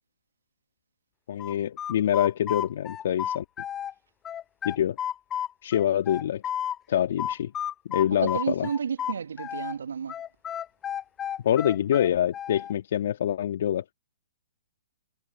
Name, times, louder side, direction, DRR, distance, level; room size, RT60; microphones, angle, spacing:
voice 1, 1.3-3.4 4.6-5.0 5.6-6.4 6.9-7.5 7.9-8.7 11.4-13.8, left 10 dB, 55° left, 1.7 m, -25 dB
sound 1, 1.4-3.9 4.2-6.8 7.2-9.8 10.1-12.7, left 9 dB, 20° left, 0.4 m, -32 dB
voice 2, 8.2-10.1, right 7 dB, 70° right, 1.2 m, -31 dB
figure-of-eight pair, 120°, 0 cm